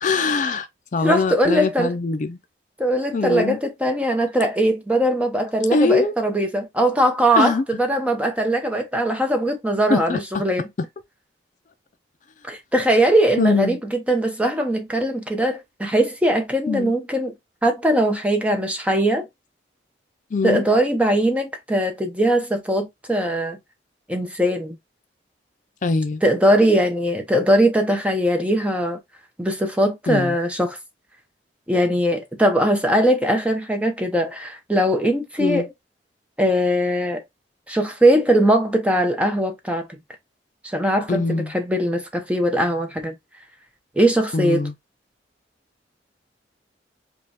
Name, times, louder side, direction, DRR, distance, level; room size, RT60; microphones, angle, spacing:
voice 1, 0.0-2.4 3.1-3.6 5.7-6.1 7.4-7.6 9.9-10.4 13.4-13.8 16.7-16.9 20.3-20.6 25.8-26.2 30.1-30.4 35.4-35.7 41.1-41.5 44.3-44.7, left 3 dB, 45° left, 0.4 m, -22 dB
voice 2, 1.0-1.9 2.8-10.7 12.5-17.3 17.6-19.3 20.4-23.6 24.1-24.8 26.2-29.0 29.4-30.8 31.7-35.7 36.4-37.2 37.7-39.9 40.6-43.2 44.0-44.7, right 1 dB, 5° right, 0.7 m, -20 dB
5.1 x 2.2 x 2.8 m
head